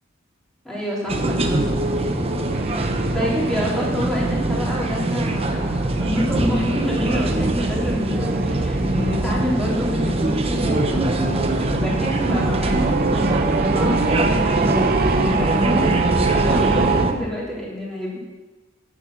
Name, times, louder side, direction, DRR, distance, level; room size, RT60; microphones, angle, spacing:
voice 1, 0.6-1.6 2.7-18.2, equal, 5° left, -6 dB, 3.3 m, -28 dB
sound 1, 1.1-17.1, right 2 dB, 30° right, 0.9 m, -22 dB
sound 2, 1.1-17.1, right 4 dB, 45° right, 0.5 m, -29 dB
9.1 x 7.2 x 7.1 m, 1.2 s
head